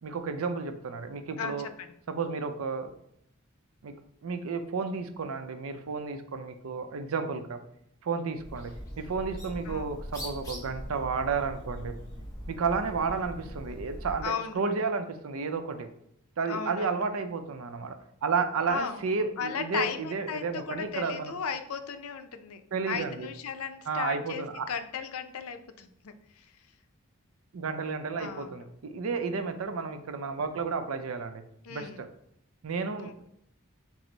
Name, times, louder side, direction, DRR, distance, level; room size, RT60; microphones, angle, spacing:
voice 1, 0.0-1.7 2.1-2.9 3.8-3.9 4.2-7.6 8.0-12.0 12.5-15.9 16.4-21.3 22.7-23.3 23.8-24.7 27.5-31.4 31.7-32.1 32.6-33.3, right 4 dB, 75° right, 8 dB, 0.5 m, -32 dB
voice 2, 1.4-1.9 9.7-9.9 14.2-14.6 16.5-17.1 18.7-19.0 19.4-22.6 22.9-26.5 28.2-28.6 31.6-32.0 33.0-33.3, left 6 dB, 90° left, 9 dB, 0.5 m, -36 dB
Bird, 8.3-14.3, equal, 15° left, 1.5 m, -41 dB
6.0 x 2.0 x 3.8 m, 0.75 s
head